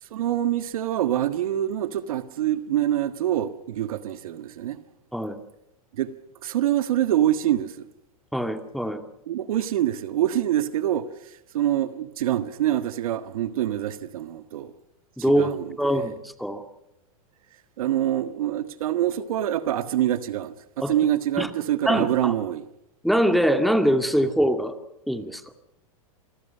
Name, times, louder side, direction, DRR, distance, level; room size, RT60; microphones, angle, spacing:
voice 1, 0.0-4.8 5.9-6.1 6.4-7.9 9.3-11.1 11.5-14.7 15.2-16.1 17.8-22.6, right 12 dB, 75° right, 1.7 m, -25 dB
voice 2, 8.3-9.0 15.2-16.6 20.8-20.9 21.4-21.5 21.9-22.3 23.0-24.8 25.1-25.4, equal, ahead, 2.1 m, -23 dB
27.5 x 23.0 x 5.7 m
hypercardioid pair, 115°, 18 cm